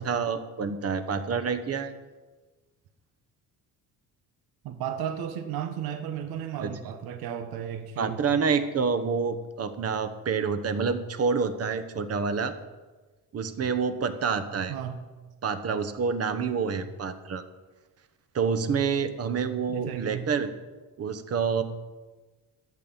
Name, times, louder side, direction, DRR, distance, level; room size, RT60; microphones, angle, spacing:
voice 1, 0.0-1.9 6.6-6.7 8.0-12.5 13.3-14.7 15.4-17.4 18.3-20.5 21.0-21.6, right 5 dB, 40° right, 10 dB, 1.1 m, -28 dB
voice 2, 4.6-8.2 14.7-15.0 19.7-20.3, right 9 dB, 85° right, 8 dB, 1.3 m, -34 dB
13.0 x 7.9 x 7.2 m, 1.3 s
cardioid pair, 125°, 36 cm